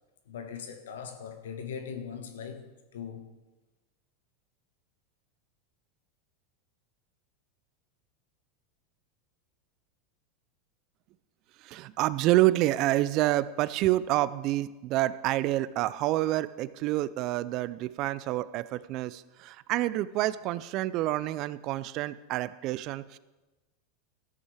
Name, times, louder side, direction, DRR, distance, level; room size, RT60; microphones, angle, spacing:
voice 1, 0.3-3.3, left 7 dB, 85° left, 1.4 m, -40 dB
voice 2, 11.6-23.2, right 16 dB, 50° right, 0.5 m, -28 dB
13.5 x 8.2 x 4.9 m
hypercardioid pair, 115°, 0 cm